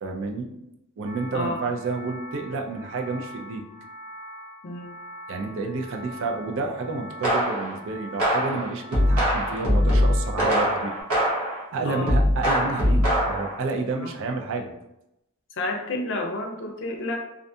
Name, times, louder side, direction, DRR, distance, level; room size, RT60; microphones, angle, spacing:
voice 1, 0.0-0.6 1.0-3.6 5.3-10.9 11.7-14.7, right 3 dB, 60° right, 3 dB, 0.4 m, -30 dB
sound 1, 1.0-11.0, left 1 dB, 25° right, 0.8 m, -43 dB
voice 2, 4.6-4.9 11.9-12.1 14.0-14.1 15.5-17.2, left 2 dB, 60° left, 2 dB, 0.5 m, -30 dB
sound 2, 7.2-7.8 8.2-11.6 12.1-13.6, equal, 80° right, 0.8 m, -22 dB
2.5 x 2.2 x 2.6 m, 0.88 s
head